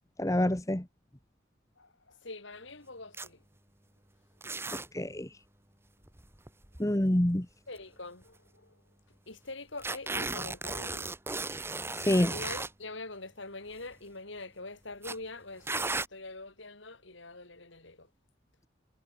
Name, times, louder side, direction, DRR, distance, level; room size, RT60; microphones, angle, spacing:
voice 1, 0.2-0.8 4.7-5.3 6.8-7.5 12.1-12.3, left 1 dB, 15° left, 1.1 m, -27 dB
voice 2, 1.8-3.4 6.8-6.9 7.7-8.8 9.3-11.1 12.3-18.1, left 2 dB, 70° left, 4.5 m, -44 dB
sound 1, 3.1-3.3 4.4-4.9 6.0-7.0 7.8-7.9 8.2-8.3 9.8-12.7 13.7-13.9 15.0-15.2 15.7-16.1, right 3 dB, 10° right, 1.7 m, -35 dB
head